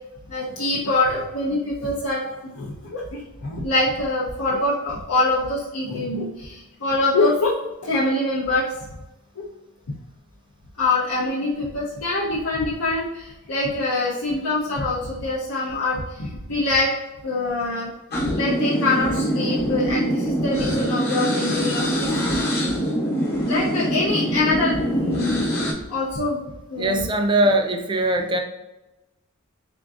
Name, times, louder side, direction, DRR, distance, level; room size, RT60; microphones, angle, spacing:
voice 1, 0.3-7.6 7.8-8.7 9.4-9.5 10.8-16.9 17.2-17.9 18.3-22.1 22.4-22.6 23.5-25.5 25.9-27.1, left 2 dB, 85° left, -6 dB, 0.7 m, -24 dB
sound 1, 18.1-25.7, equal, 45° left, 1.0 m, -24 dB
voice 2, 26.8-28.4, right 1 dB, 20° right, 4 dB, 0.4 m, -21 dB
3.7 x 3.5 x 2.4 m, 1.0 s
head